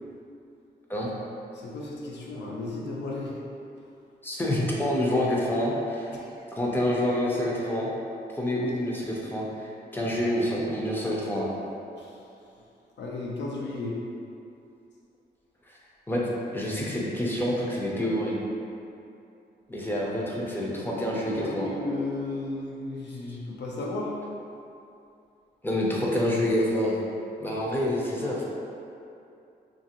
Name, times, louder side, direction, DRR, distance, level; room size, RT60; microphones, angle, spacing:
voice 1, 1.5-3.3 6.1-6.3 12.0-12.1 13.0-14.0 21.3-24.1, left 2 dB, 85° left, -3 dB, 0.5 m, -34 dB
voice 2, 4.2-6.1 6.5-7.9 8.3-11.5 15.7-15.8 16.1-18.4 19.7-21.7 25.6-27.0 27.4-28.4, left 1 dB, 10° left, -5 dB, 0.4 m, -27 dB
2.8 x 2.4 x 2.8 m, 2.6 s
wide cardioid pair, 145°, 18 cm